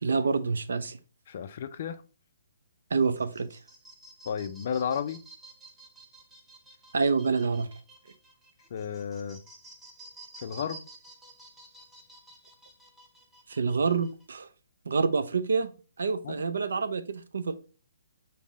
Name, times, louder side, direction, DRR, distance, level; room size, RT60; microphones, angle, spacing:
voice 1, 0.0-1.0 2.9-3.6 6.9-7.7 13.5-14.5 14.9-15.7 16.0-17.5, right 4 dB, 75° right, 0.5 m, -27 dB
voice 2, 1.3-2.0 4.3-5.2 8.7-9.4 10.4-10.8 16.2-16.5, left 7 dB, 50° left, 0.3 m, -33 dB
sound 1, 3.0-14.3, right 2 dB, 10° right, 0.6 m, -52 dB
5.3 x 2.0 x 3.6 m
hypercardioid pair, 140°, 0 cm